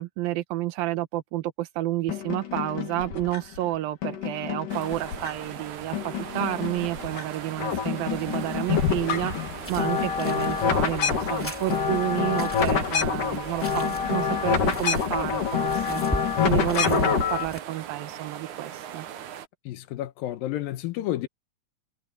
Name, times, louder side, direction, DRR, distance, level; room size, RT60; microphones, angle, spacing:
voice 1, 0.0-16.0 16.4-19.1, right 15 dB, 90° right, 2.9 m, -30 dB
sound 1, 2.1-3.6 4.0-5.6 5.9-7.2 7.5-17.5, left 7 dB, 65° left, 4.3 m, -27 dB
sound 2, 4.7-19.5, right 10 dB, 65° right, 2.7 m, -40 dB
sound 3, 8.1-17.6, equal, 5° left, 2.8 m, -40 dB
voice 2, 19.7-21.3, left 14 dB, 85° left, 2.7 m, -31 dB
omnidirectional pair, 4.1 m